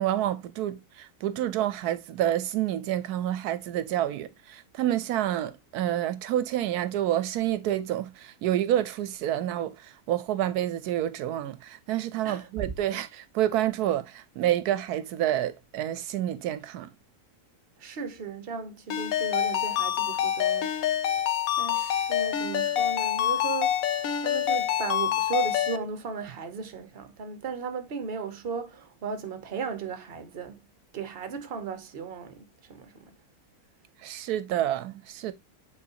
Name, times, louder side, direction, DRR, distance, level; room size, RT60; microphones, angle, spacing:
voice 1, 0.0-16.9 34.0-35.3, right 12 dB, 80° right, 1.1 m, -28 dB
voice 2, 17.8-21.1 21.6-30.6 30.9-33.1, right 6 dB, 45° right, 1.0 m, -36 dB
Ringtone, 18.9-25.8, left 10 dB, 70° left, 1.1 m, -26 dB
8.5 x 4.1 x 2.7 m
omnidirectional pair, 1.6 m